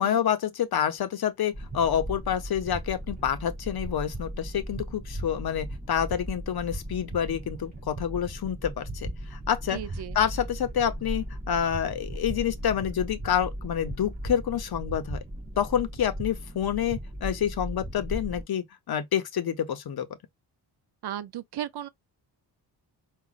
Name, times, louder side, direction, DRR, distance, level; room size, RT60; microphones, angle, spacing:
voice 1, 0.0-9.8 10.1-15.2 15.6-20.1, left 9 dB, 60° left, 0.8 m, -28 dB
sound 1, 1.5-18.4, right 1 dB, 20° right, 2.7 m, -37 dB
voice 2, 9.7-10.2 21.0-21.9, right 11 dB, 65° right, 0.6 m, -35 dB
5.0 x 2.4 x 2.4 m
wide cardioid pair, 155°, 43 cm